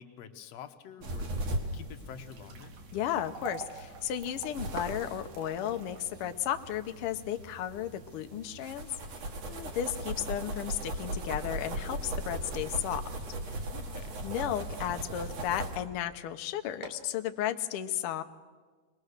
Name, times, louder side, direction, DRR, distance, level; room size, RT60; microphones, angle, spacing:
voice 1, 0.0-2.7 13.7-14.2, left 8 dB, 65° left, 8 dB, 1.9 m, -48 dB
sound 1, 1.0-15.8, right 1 dB, 60° right, 2.9 m, -39 dB
sound 2, 2.1-14.4 14.8-14.9 15.6-15.8 16.1-16.2 16.6-17.2, right 5 dB, 75° right, 3.2 m, -51 dB
voice 2, 2.9-8.9 9.2-13.1 13.4-13.7 14.2-18.2, left 11 dB, 80° left, 7 dB, 1.2 m, -34 dB
23.5 x 20.0 x 6.5 m, 1.4 s
omnidirectional pair, 3.6 m